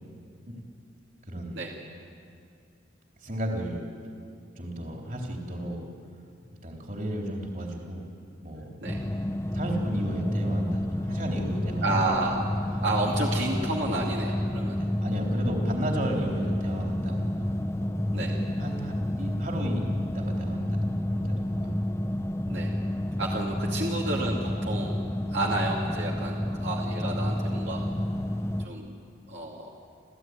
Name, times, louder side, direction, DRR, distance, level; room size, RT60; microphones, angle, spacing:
voice 1, 1.3-1.6 3.2-3.8 4.6-5.8 6.6-8.1 8.4-8.7 9.5-12.0 14.7-17.5 17.8-19.8 20.1-21.8 23.3-23.4 23.8-23.9, right 1 dB, 45° right, 0 dB, 3.7 m, -34 dB
sound 1, 8.9-28.7, left 1 dB, 15° left, 0.6 m, -30 dB
voice 2, 11.8-14.8 18.1-18.3 22.5-22.7 23.2-25.0 25.3-27.8 28.6-28.9 29.3-29.7, right 2 dB, 70° right, -2 dB, 2.5 m, -31 dB
28.5 x 15.0 x 9.6 m, 2.4 s
head